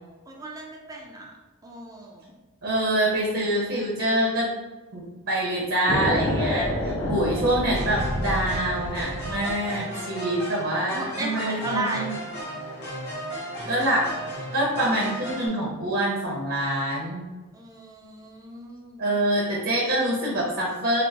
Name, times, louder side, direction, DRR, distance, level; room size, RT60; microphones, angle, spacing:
voice 1, 0.3-1.3 1.6-2.3 10.9-12.1 17.5-19.1, right 2 dB, 15° right, -1 dB, 0.5 m, -35 dB
voice 2, 2.6-4.5 4.9-12.1 13.7-14.1 14.5-17.3 19.0-21.0, right 1 dB, 65° right, -4 dB, 0.8 m, -25 dB
sound 1, 5.9-9.6, left 1 dB, 70° left, 1.1 m, -28 dB
sound 2, 7.7-15.5, equal, 55° left, 1.4 m, -35 dB
5.1 x 2.1 x 2.8 m, 1.2 s
head